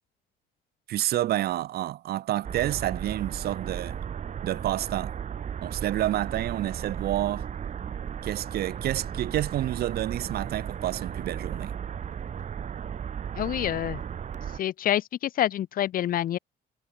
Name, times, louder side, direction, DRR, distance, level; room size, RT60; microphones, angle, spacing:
voice 1, 0.9-4.0 4.4-5.1 5.6-7.5 8.2-11.7, right 13 dB, 70° right, 2.8 m, -29 dB
sound 1, 2.4-14.6, right 8 dB, 45° right, 4.6 m, -35 dB
voice 2, 13.4-14.0 14.6-16.4, left 12 dB, 55° left, 1.1 m, -27 dB
cardioid pair, 110°, 17 cm